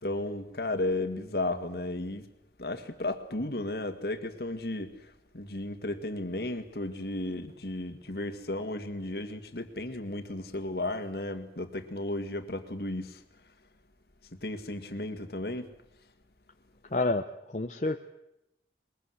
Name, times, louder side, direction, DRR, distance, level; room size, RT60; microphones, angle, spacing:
voice 1, 0.0-2.2 2.6-4.9 5.3-13.2 14.4-15.7, left 2 dB, 60° left, 2.1 m, -34 dB
voice 2, 16.9-18.1, left 2 dB, 40° left, 0.9 m, -29 dB
22.0 x 22.0 x 8.0 m
head